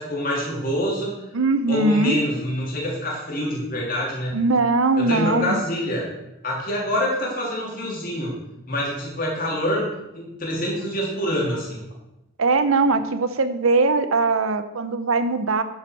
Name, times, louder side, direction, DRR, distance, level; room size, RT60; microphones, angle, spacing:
voice 1, 0.0-1.2 1.7-4.4 5.0-6.1 6.4-8.4 8.7-11.8, equal, 40° left, -4 dB, 3.1 m, -26 dB
voice 2, 1.3-2.2 4.3-5.6 12.4-15.6, right 3 dB, 75° right, 12 dB, 0.7 m, -20 dB
9.4 x 7.4 x 4.7 m, 0.93 s
head